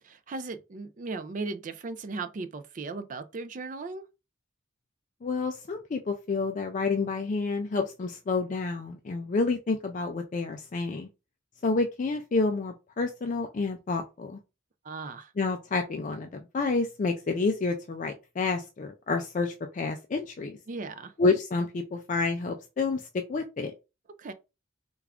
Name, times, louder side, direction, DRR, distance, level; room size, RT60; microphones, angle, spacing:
voice 1, 0.0-4.0 14.8-15.3 20.7-21.1 24.2-24.3, right 3 dB, 40° right, 0.4 m, -37 dB
voice 2, 5.2-11.1 11.6-14.4 15.4-16.3 16.5-20.6 21.2-23.0 23.3-23.7, left 3 dB, 35° left, 0.3 m, -29 dB
3.4 x 2.3 x 3.5 m
head